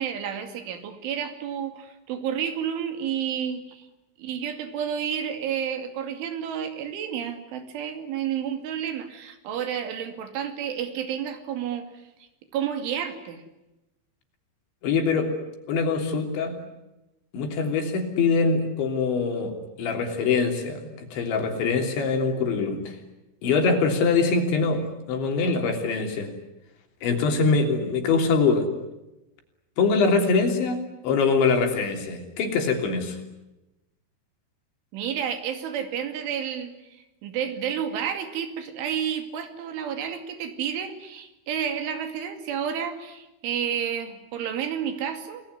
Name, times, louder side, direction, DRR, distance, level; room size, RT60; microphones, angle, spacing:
voice 1, 0.0-3.9 4.2-11.9 12.5-13.4 34.9-45.4, right 8 dB, 80° right, 7 dB, 4.9 m, -30 dB
voice 2, 14.8-15.3 15.7-16.5 17.3-23.0 23.4-26.3 27.0-28.7 29.8-33.2, left 4 dB, 70° left, 4 dB, 5.5 m, -23 dB
29.5 x 20.0 x 9.7 m, 0.97 s
omnidirectional pair, 5.4 m